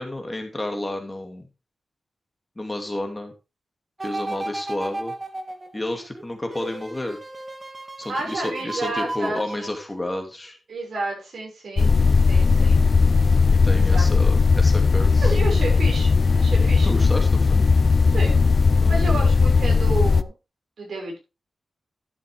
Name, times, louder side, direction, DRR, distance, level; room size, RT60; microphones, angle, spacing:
voice 1, 0.0-1.5 2.6-3.3 4.0-5.1 5.7-7.2 8.0-10.6 13.5-15.4 16.8-17.7 18.8-19.3, left 1 dB, 20° left, 4 dB, 2.4 m, -31 dB
sound 1, 4.0-10.2 10.7-10.8, right 2 dB, 25° right, 1.5 m, -34 dB
voice 2, 8.1-9.7 10.7-11.9 12.3-12.8 13.7-14.2 15.2-16.9 18.1-18.4 18.9-20.3 20.8-21.2, right 2 dB, 75° right, 0 dB, 6.1 m, -31 dB
sound 2, 11.8-20.2, left 4 dB, 50° left, 0.5 m, -17 dB
11.5 x 7.5 x 3.4 m, 0.27 s
wide cardioid pair, 85°, 0 cm